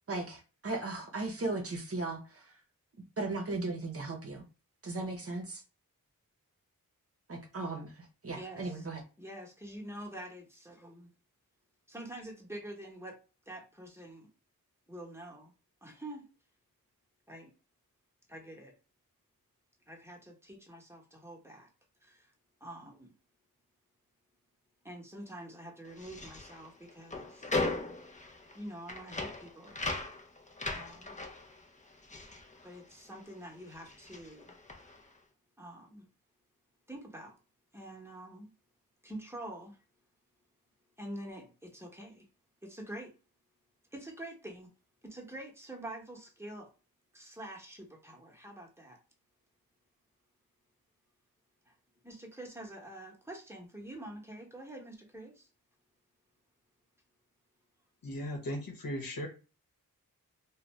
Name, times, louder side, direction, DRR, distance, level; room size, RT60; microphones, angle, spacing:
voice 1, 0.1-2.5 3.2-4.4 4.8-5.6 7.3-9.0, right 2 dB, 40° right, 0.7 m, -37 dB
voice 2, 8.3-8.9 9.2-11.1 11.9-13.2 13.5-14.3 14.9-15.5 15.8-16.3 17.3-17.5 18.3-18.7 19.9-21.7 22.0-22.3 22.6-23.1 24.8-27.5 28.5-29.8 30.7-31.2 32.6-34.6 35.6-36.1 36.9-37.3 37.7-38.5 39.0-39.8 41.0-42.3 42.6-43.1 43.9-44.7 45.0-46.7 47.1-49.0 51.7-51.8 52.0-55.5, right 1 dB, 5° right, 1.0 m, -46 dB
sound 1, 25.9-33.4 33.6-35.1, left 2 dB, 20° left, 0.6 m, -39 dB
voice 3, 58.0-59.3, left 1 dB, 70° left, 1.0 m, -37 dB
2.5 x 2.2 x 3.1 m
cardioid pair, 45°, 36 cm